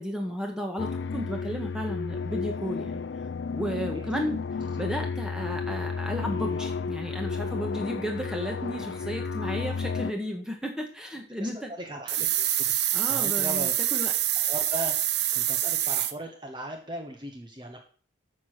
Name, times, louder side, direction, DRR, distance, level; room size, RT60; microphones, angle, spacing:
voice 1, 0.0-3.0 3.5-4.4 4.8-11.7 12.9-14.1, equal, 5° right, 2 dB, 1.7 m, -33 dB
sound 1, 0.8-10.1, left 5 dB, 70° left, 0.4 m, -32 dB
voice 2, 3.9-4.3 11.4-13.7 14.1-17.9, right 1 dB, 25° right, 4 dB, 1.0 m, -39 dB
sound 2, 12.1-16.1, right 12 dB, 60° right, 0.7 m, -26 dB
9.3 x 6.4 x 6.2 m, 0.43 s
head